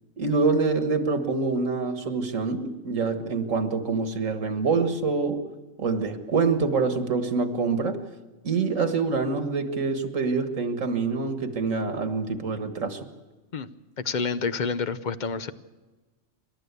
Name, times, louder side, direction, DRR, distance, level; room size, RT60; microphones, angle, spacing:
voice 1, 0.2-5.4 5.8-8.0 8.4-13.0, right 4 dB, 90° right, 9 dB, 2.0 m, -26 dB
voice 2, 14.0-15.5, left 5 dB, 45° left, 12 dB, 0.8 m, -28 dB
28.0 x 12.0 x 8.2 m, 1.2 s
omnidirectional pair, 1.3 m